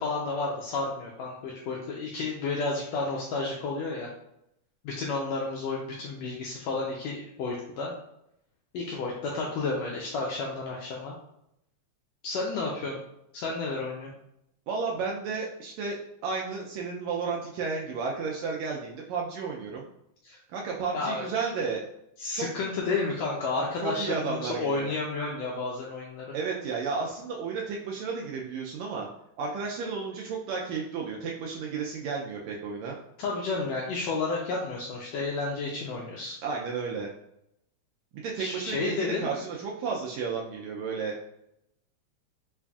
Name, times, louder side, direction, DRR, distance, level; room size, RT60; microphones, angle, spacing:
voice 1, 0.0-4.1 4.8-7.9 8.7-11.1 12.2-13.0 13.3-14.1 20.2-20.4 20.9-21.2 22.2-26.3 33.2-36.4 38.4-39.3, left 3 dB, 80° left, -2 dB, 1.5 m, -31 dB
voice 2, 14.7-16.0 16.2-19.9 20.5-21.8 22.3-22.5 23.8-24.9 26.3-29.1 29.4-33.0 36.4-37.1 38.1-41.2, right 5 dB, 80° right, -2 dB, 1.6 m, -32 dB
5.3 x 2.5 x 2.3 m, 0.79 s
omnidirectional pair, 3.5 m